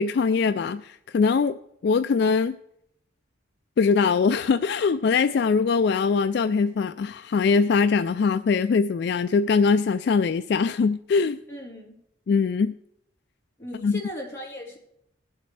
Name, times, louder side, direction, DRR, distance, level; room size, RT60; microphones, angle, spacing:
voice 1, 0.0-1.5 1.8-2.6 3.8-11.4 12.3-12.7 13.8-14.0, left 5 dB, 55° left, 11 dB, 0.3 m, -22 dB
voice 2, 11.5-12.0 13.6-14.8, left 1 dB, 15° left, -7 dB, 3.8 m, -37 dB
20.0 x 7.9 x 3.3 m, 0.76 s
head